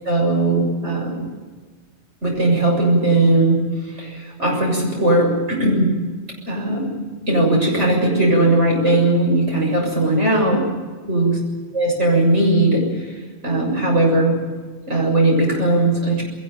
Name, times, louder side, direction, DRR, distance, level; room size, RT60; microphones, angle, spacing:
voice 1, 0.0-1.3 2.2-3.6 4.0-5.9 6.5-7.0 7.3-10.6 11.1-11.4 11.7-12.8 13.4-14.3 14.9-16.2, right 2 dB, 75° right, 0 dB, 7.3 m, -18 dB
21.0 x 18.5 x 9.0 m, 1.4 s
omnidirectional pair, 1.2 m